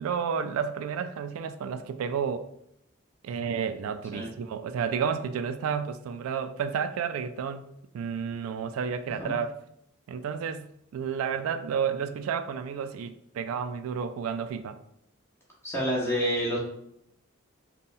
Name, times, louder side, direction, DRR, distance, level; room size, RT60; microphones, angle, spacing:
voice 1, 0.0-2.5 3.2-7.6 7.9-9.6 10.1-14.8, right 7 dB, 85° right, 11 dB, 0.3 m, -31 dB
voice 2, 15.6-16.6, equal, 10° left, -5 dB, 1.1 m, -28 dB
3.5 x 2.2 x 4.1 m, 0.74 s
head